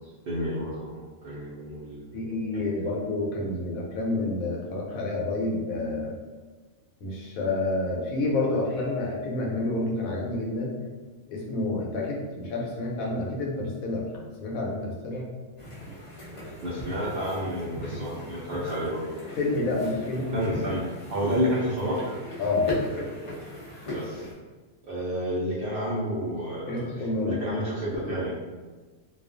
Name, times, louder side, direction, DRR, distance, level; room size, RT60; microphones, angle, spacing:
voice 1, 0.3-2.6 16.6-19.0 20.3-20.8 21.1-22.0 23.9-24.3 24.9-26.8 27.3-28.4, equal, 60° right, -8 dB, 0.6 m, -30 dB
voice 2, 2.1-6.1 7.0-10.7 11.3-14.1 14.4-15.3 19.3-20.5 22.4-22.7 26.7-27.4, left 2 dB, 85° left, -1 dB, 1.0 m, -29 dB
sound 1, 15.6-24.3, left 1 dB, 55° left, 0.3 m, -38 dB
2.3 x 2.3 x 2.4 m, 1.3 s
omnidirectional pair, 1.4 m